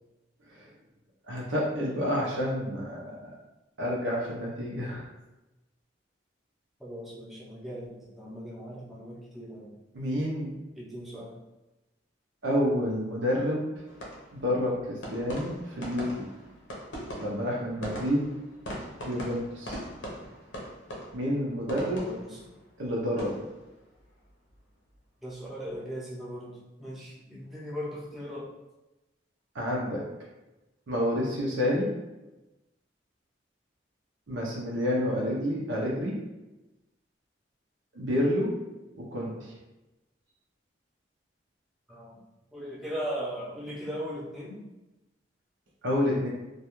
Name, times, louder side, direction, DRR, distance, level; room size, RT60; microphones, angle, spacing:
voice 1, 1.3-3.3 3.8-5.1 9.9-10.6 12.4-13.8 14.3-16.3 17.2-18.3 19.0-19.8 21.1-22.1 22.8-23.4 29.5-30.0 30.9-31.9 34.3-36.2 37.9-38.6 38.9-39.5 45.8-46.3, equal, 85° right, -4 dB, 0.6 m, -29 dB
voice 2, 6.8-9.8 10.7-11.4 21.8-22.5 25.2-28.6 41.9-42.2 42.5-44.7, equal, ahead, -7 dB, 0.6 m, -38 dB
sound 1, 13.9-25.0 25.3-25.8, equal, 80° left, 0.7 m, -42 dB
2.3 x 2.2 x 2.9 m, 1.0 s
head